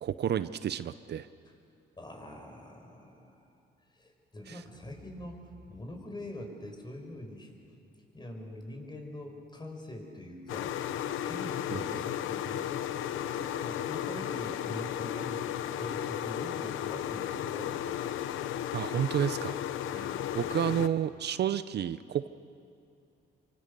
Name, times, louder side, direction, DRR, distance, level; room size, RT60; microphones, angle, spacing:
voice 1, 0.0-1.3 4.5-4.6 11.7-11.8 18.7-19.6 19.9-20.1 20.3-22.3, right 10 dB, 55° right, 13 dB, 0.6 m, -30 dB
voice 2, 2.0-3.5 3.9-7.5 8.1-10.8 11.2-12.7 13.2-18.5 19.9-20.6, left 1 dB, 20° left, 3 dB, 4.8 m, -44 dB
sound 1, 10.5-20.9, left 11 dB, 85° left, 0.8 m, -34 dB
26.0 x 24.0 x 6.7 m, 2.6 s
cardioid pair, 90°, 20 cm